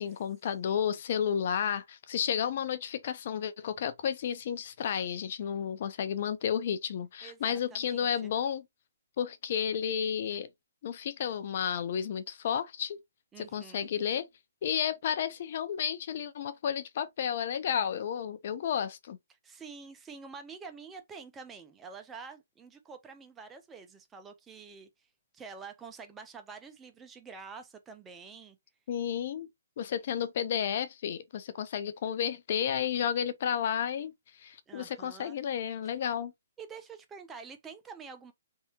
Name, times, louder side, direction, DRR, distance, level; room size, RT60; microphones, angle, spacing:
voice 1, 0.0-8.7 9.2-10.5 10.8-13.0 13.4-14.3 14.6-19.2 28.9-29.5 29.8-34.1 34.4-36.3, left 8 dB, 45° left, 0.8 m, -32 dB
voice 2, 7.2-8.3 13.3-13.9 19.4-24.9 25.3-28.6 34.7-35.4 36.6-38.3, right 5 dB, 10° right, 0.7 m, -47 dB
4.1 x 3.6 x 2.8 m
hypercardioid pair, 155°, 0 cm